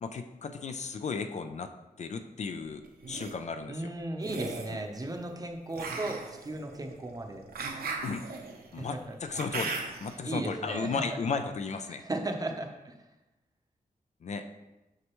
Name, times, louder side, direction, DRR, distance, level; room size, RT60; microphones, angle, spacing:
voice 1, 0.0-1.7 2.0-3.9 4.7-4.8 8.0-8.3 8.7-12.0 14.2-14.5, left 5 dB, 50° left, 7 dB, 0.4 m, -35 dB
sound 1, 2.8-3.3 4.2-4.8 5.7-10.1, right 4 dB, 85° right, 0.9 m, -38 dB
voice 2, 3.7-7.4 8.8-8.9 10.2-10.9 12.0-12.9, right 2 dB, 25° right, 4 dB, 0.7 m, -35 dB
6.4 x 6.4 x 3.0 m, 1.0 s
wide cardioid pair, 160°, 15 cm